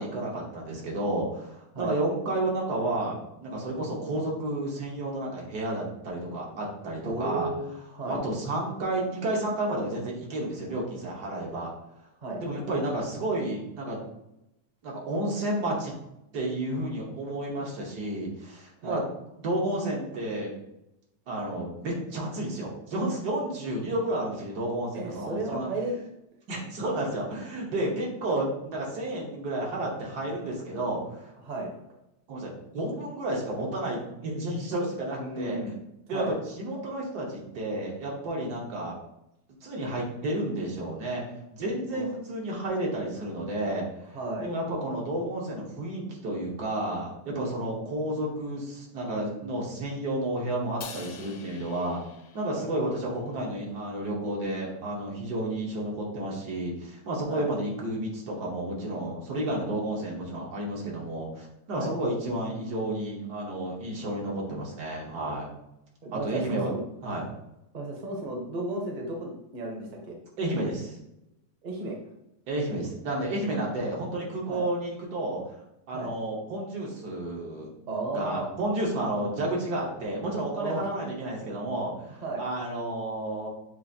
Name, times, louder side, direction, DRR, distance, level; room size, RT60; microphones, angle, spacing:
voice 1, 0.0-7.5 8.1-11.7 12.4-14.0 14.8-15.9 16.3-19.0 19.4-20.5 21.3-25.7 26.5-31.3 32.3-35.6 36.1-39.0 39.6-41.2 41.5-43.9 44.4-52.0 52.3-65.5 66.1-66.7 67.0-67.3 70.4-71.0 72.5-75.4 75.9-77.7 78.1-83.5, right 1 dB, 75° right, -3 dB, 1.7 m, -31 dB
voice 2, 7.0-8.2 12.2-12.4 18.8-19.0 24.9-26.1 31.4-31.7 35.2-35.7 36.1-36.4 41.9-42.1 44.1-44.5 52.5-52.7 57.3-57.5 61.7-61.9 66.0-66.8 67.7-70.2 71.6-72.0 74.5-74.6 75.9-76.1 77.9-78.5 80.6-80.9 82.1-82.4, right 2 dB, 40° right, 1 dB, 0.7 m, -34 dB
Crash cymbal, 50.8-53.2, left 6 dB, 75° left, 1.1 m, -46 dB
7.0 x 2.5 x 2.7 m, 0.86 s
omnidirectional pair, 1.8 m